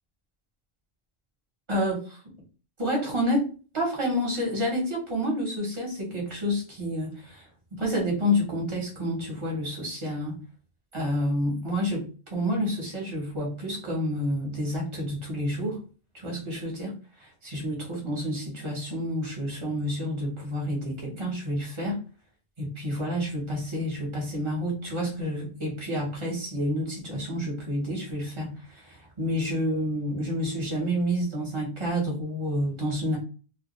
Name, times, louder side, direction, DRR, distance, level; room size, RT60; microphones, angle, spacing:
voice 1, 1.7-2.2 2.8-10.4 10.9-15.8 16.1-22.0 22.6-33.2, equal, 30° right, -2 dB, 0.9 m, -29 dB
2.3 x 2.2 x 2.9 m, 0.35 s
omnidirectional pair, 1.0 m